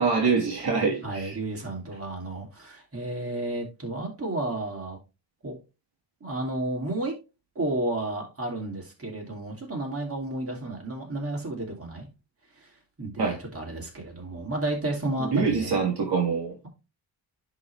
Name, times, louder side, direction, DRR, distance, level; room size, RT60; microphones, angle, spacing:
voice 1, 0.0-1.3 13.2-13.4 15.3-16.5, right 5 dB, 55° right, 1.9 m, -24 dB
voice 2, 1.0-5.0 5.4-5.6 6.2-7.2 7.5-12.1 12.6-12.7 13.0-15.8, right 2 dB, 30° right, 2.8 m, -32 dB
10.5 x 3.9 x 3.2 m
wide cardioid pair, 125°, 44 cm